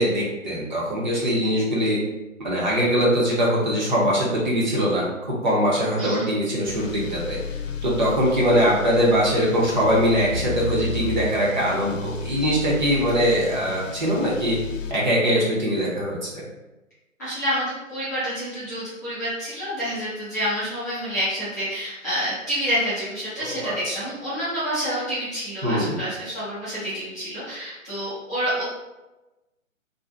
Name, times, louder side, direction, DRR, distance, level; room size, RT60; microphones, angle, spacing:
voice 1, 0.0-2.0 2.4-7.4 7.8-14.6 14.9-16.4 23.4-24.0 25.6-26.0, equal, 35° right, -5 dB, 0.7 m, -22 dB
sound 1, 6.7-14.9, left 3 dB, 70° left, 0.5 m, -33 dB
voice 2, 17.2-28.6, equal, 15° left, -15 dB, 0.6 m, -28 dB
2.5 x 2.1 x 3.2 m, 1.0 s
figure-of-eight pair, 145°, 40 cm